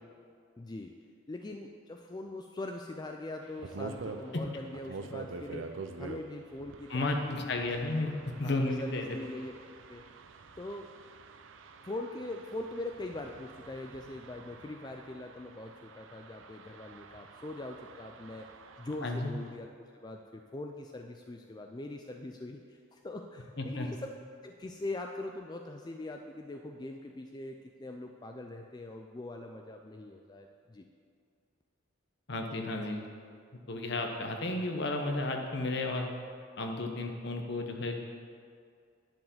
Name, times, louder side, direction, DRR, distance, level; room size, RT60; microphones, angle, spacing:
voice 1, 0.6-0.9 1.3-5.7 6.0-7.6 8.4-9.5 9.9-10.0 10.6-10.9 11.8-18.5 18.8-24.1 24.4-30.9, left 2 dB, 20° left, 3 dB, 0.4 m, -42 dB
sound 1, 3.4-19.6, right 4 dB, 75° right, 0.6 m, -47 dB
voice 2, 6.9-8.1 8.4-9.2 19.0-19.3 23.6-23.9 32.3-33.1 33.7-36.1 36.6-38.1, left 2 dB, 55° left, 3 dB, 1.0 m, -33 dB
10.5 x 4.8 x 7.8 m, 2.2 s
head